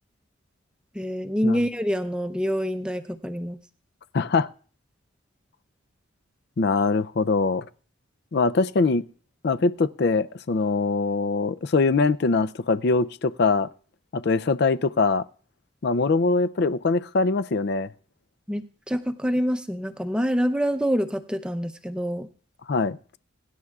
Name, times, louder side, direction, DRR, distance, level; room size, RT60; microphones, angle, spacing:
voice 1, 0.9-3.6 18.5-22.3, equal, 5° right, 0.6 m, -26 dB
voice 2, 4.1-4.5 6.6-7.6 8.3-9.0 9.4-13.7 14.1-15.2 15.8-17.9 22.7-23.0, left 3 dB, 50° left, 0.4 m, -22 dB
23.5 x 11.0 x 2.4 m
head